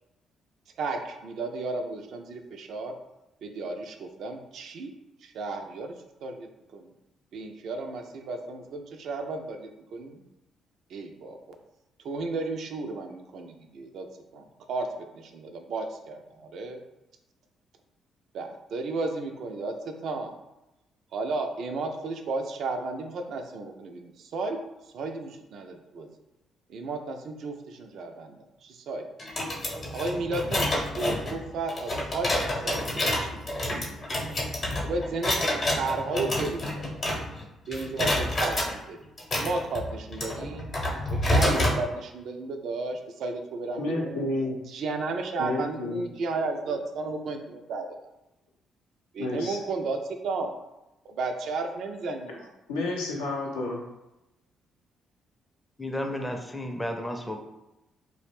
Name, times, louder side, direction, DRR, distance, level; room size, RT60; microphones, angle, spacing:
voice 1, 0.8-2.9 3.4-4.9 5.2-5.9 6.2-6.9 7.3-10.2 10.9-11.6 12.0-14.1 14.3-14.9 15.1-16.8 18.3-20.3 21.1-24.6 24.9-26.1 26.7-29.1 29.9-33.4 34.8-37.0 37.7-39.0 39.4-40.7 41.2-44.2 44.7-47.9 49.1-50.6 51.2-52.5, right 3 dB, 60° right, 4 dB, 0.3 m, -33 dB
sound 1, 29.2-37.5 37.7-38.7 39.2-41.8, left 1 dB, 45° left, 0.7 m, -28 dB
voice 2, 43.8-44.6 45.4-46.0 49.2-49.6 52.7-53.8, left 2 dB, 85° left, -3 dB, 0.5 m, -30 dB
voice 3, 55.8-57.4, left 1 dB, 10° left, 4 dB, 0.5 m, -32 dB
2.4 x 2.0 x 3.3 m, 0.93 s
hypercardioid pair, 45°, 0 cm